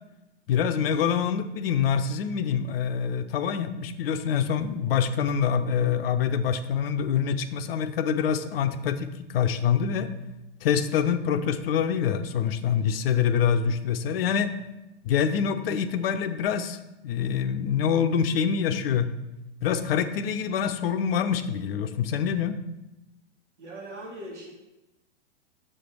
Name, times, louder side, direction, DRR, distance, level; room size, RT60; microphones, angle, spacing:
voice 1, 0.5-10.1 10.6-14.5 15.0-19.1 19.6-22.6, left 7 dB, 55° left, 10 dB, 0.6 m, -25 dB
voice 2, 23.6-24.5, right 1 dB, 75° right, -3 dB, 1.7 m, -40 dB
7.7 x 3.3 x 6.0 m, 0.96 s
figure-of-eight pair, 105°, 36 cm